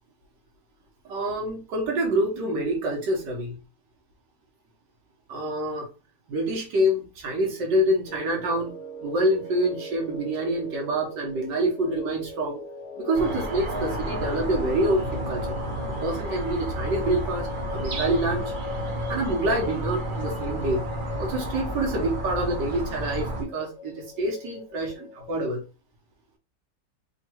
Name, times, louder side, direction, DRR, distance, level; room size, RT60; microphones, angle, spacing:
voice 1, 1.1-3.6 5.3-5.9 6.3-8.7 9.0-12.6 13.0-15.6 16.0-18.5 19.1-20.8 21.2-25.6, right 1 dB, 80° right, -1 dB, 1.7 m, -26 dB
sound 1, 8.1-25.4, left 4 dB, 70° left, 1.2 m, -40 dB
sound 2, 13.1-23.4, right 1 dB, 45° right, 0.6 m, -31 dB
3.7 x 2.4 x 4.5 m, 0.32 s
omnidirectional pair, 1.9 m